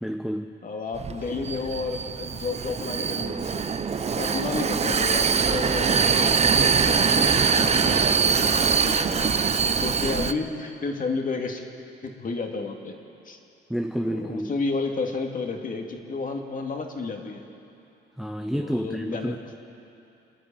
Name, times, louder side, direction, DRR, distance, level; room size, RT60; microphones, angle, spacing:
voice 1, 0.0-0.5 13.7-14.5 18.2-19.4, equal, ahead, 5 dB, 0.9 m, -29 dB
voice 2, 0.6-3.6 4.1-9.1 9.7-11.7 12.0-12.9 13.2-13.4 14.0-17.4 18.5-19.5, left 4 dB, 45° left, 2 dB, 2.5 m, -32 dB
Vehicle, 0.9-10.3, right 6 dB, 35° right, 0.8 m, -23 dB
27.5 x 10.5 x 9.0 m, 2.8 s
cardioid pair, 90°, 20 cm